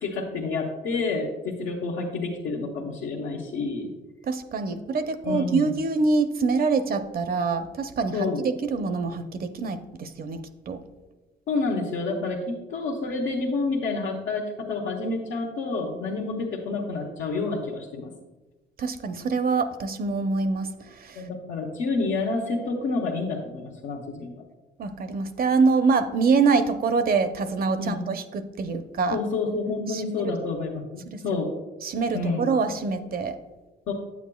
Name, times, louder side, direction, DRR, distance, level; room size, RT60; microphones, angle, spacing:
voice 1, 0.0-3.9 5.2-5.8 8.1-8.5 11.5-18.1 21.2-24.4 27.8-28.0 29.1-31.5 32.1-32.5 33.9-34.0, left 3 dB, 90° left, -3 dB, 1.0 m, -29 dB
voice 2, 4.3-10.4 10.7-10.8 18.8-21.2 24.8-29.2 29.9-30.3 31.1-31.2 31.8-33.4, right 4 dB, 50° right, 9 dB, 0.6 m, -25 dB
8.5 x 8.3 x 2.3 m, 1.2 s
cardioid pair, 90°, 20 cm